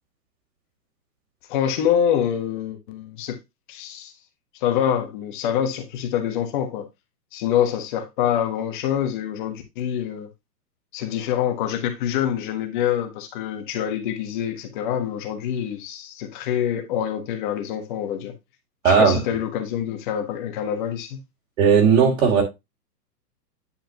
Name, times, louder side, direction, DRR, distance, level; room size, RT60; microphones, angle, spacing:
voice 1, 1.5-3.4 3.7-4.1 4.5-6.9 7.3-10.3 10.9-18.4 18.8-21.2, left 9 dB, 30° left, 1.3 m, -25 dB
voice 2, 18.8-19.2 21.6-22.4, right 6 dB, 55° right, 2.8 m, -16 dB
10.0 x 4.9 x 2.8 m
hypercardioid pair, 155°, 49 cm